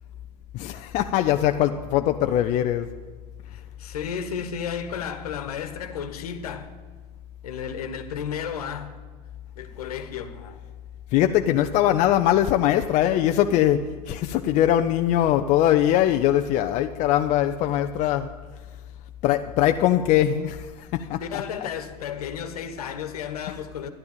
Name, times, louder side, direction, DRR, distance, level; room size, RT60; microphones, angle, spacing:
voice 1, 0.5-2.9 11.1-18.4 19.2-21.7, left 12 dB, 35° left, 0.6 m, -22 dB
voice 2, 3.5-6.7 7.4-8.9 9.6-10.6 21.2-23.9, left 7 dB, 65° left, 1.4 m, -33 dB
13.0 x 11.0 x 8.5 m
figure-of-eight pair, 85°, 21 cm